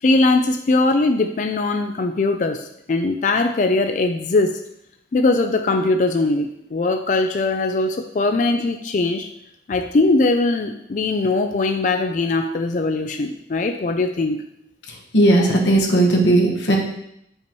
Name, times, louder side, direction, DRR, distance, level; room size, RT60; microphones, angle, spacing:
voice 1, 0.0-4.5 5.1-9.3 9.7-14.4, left 3 dB, 45° left, 6 dB, 0.4 m, -20 dB
voice 2, 15.1-16.8, right 1 dB, 90° left, -1 dB, 1.1 m, -16 dB
6.8 x 5.5 x 3.0 m, 0.77 s
head